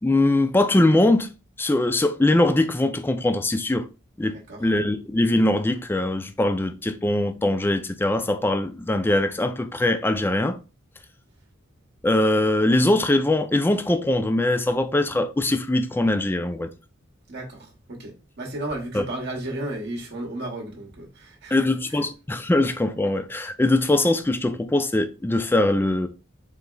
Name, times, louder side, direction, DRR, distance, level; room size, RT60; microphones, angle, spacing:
voice 1, 0.0-1.3 1.6-3.9 4.2-10.6 12.0-16.7 18.9-19.0 21.5-26.1, left 1 dB, 10° left, 0.3 m, -22 dB
voice 2, 4.3-4.7 17.3-21.6 21.9-22.0, right 1 dB, 60° right, 0.9 m, -34 dB
4.0 x 3.8 x 2.3 m
head